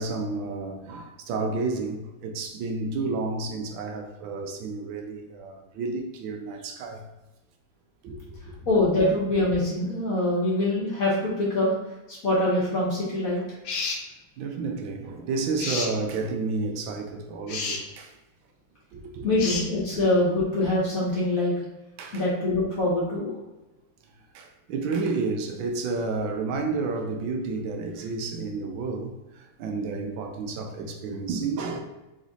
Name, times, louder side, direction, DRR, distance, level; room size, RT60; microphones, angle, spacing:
voice 1, 0.0-7.0 8.0-8.7 14.4-18.1 18.9-19.3 19.9-20.0 22.0-22.2 24.3-31.8, right 3 dB, 75° right, 1.3 m, -31 dB
voice 2, 8.7-11.8 12.1-13.4 19.2-21.5 22.1-23.3, left 1 dB, 50° left, 1.1 m, -24 dB
sound 1, 13.6-14.0 15.6-15.9 17.5-17.8 19.4-19.7, left 4 dB, 80° left, 1.5 m, -30 dB
3.9 x 3.1 x 3.9 m
omnidirectional pair, 2.2 m